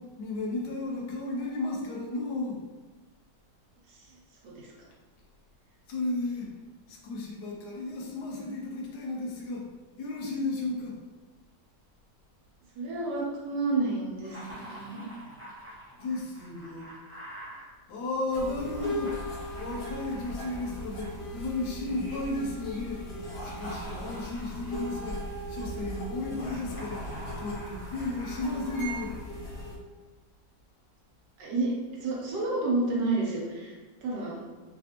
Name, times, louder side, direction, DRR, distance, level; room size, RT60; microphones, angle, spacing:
voice 1, 0.0-2.6 5.9-6.6 6.9-9.7 10.0-11.0 16.0-16.9 17.9-19.2 19.6-23.1 23.4-25.2 25.5-27.1 27.4-29.2, left 2 dB, 75° left, -1 dB, 1.1 m, -34 dB
voice 2, 3.9-4.2 4.4-4.7 12.7-15.1 31.4-34.4, right 3 dB, 85° right, -3 dB, 1.4 m, -30 dB
Laughter, 14.2-17.6 18.6-21.9 23.1-25.2 26.3-29.2, equal, 15° right, 0.4 m, -45 dB
sound 1, 18.3-29.8, equal, 50° left, 0.8 m, -38 dB
3.4 x 2.4 x 2.8 m, 1.3 s
omnidirectional pair, 1.9 m